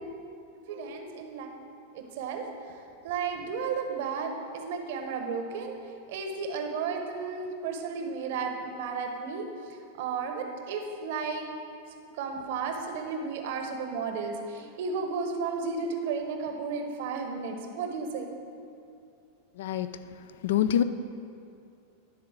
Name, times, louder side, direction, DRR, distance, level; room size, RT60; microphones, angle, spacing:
voice 1, 0.7-1.5 1.9-2.4 3.0-5.7 6.1-9.5 10.0-11.5 12.2-18.3, right 5 dB, 65° right, 4 dB, 1.0 m, -33 dB
voice 2, 19.6-19.9 20.4-20.8, left 10 dB, 75° left, 12 dB, 0.3 m, -25 dB
11.0 x 3.8 x 7.3 m, 2.6 s
hypercardioid pair, 120°, 0 cm